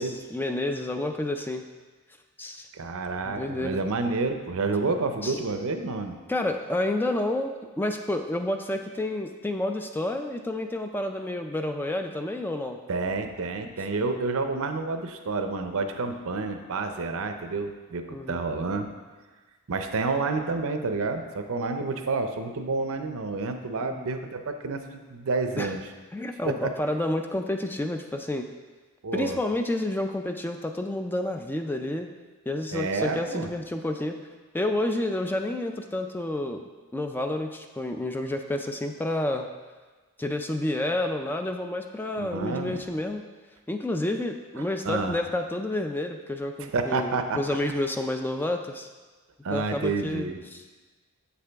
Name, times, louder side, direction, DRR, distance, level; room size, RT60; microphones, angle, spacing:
voice 1, 0.0-1.6 2.4-2.7 3.2-3.8 5.2-5.4 6.3-12.8 18.1-18.4 23.8-24.1 25.6-25.7 26.1-28.4 29.1-32.1 32.5-34.2 34.5-36.6 36.9-39.5 40.2-43.2 43.7-48.9 49.5-50.6, left 1 dB, 10° left, 5 dB, 0.3 m, -29 dB
voice 2, 2.7-6.2 12.9-18.9 19.7-25.8 26.5-26.8 29.0-29.4 32.7-33.5 42.2-42.8 44.6-45.1 46.7-47.4 49.4-50.4, right 3 dB, 65° right, 7 dB, 0.6 m, -29 dB
7.3 x 6.8 x 3.4 m, 1.3 s
head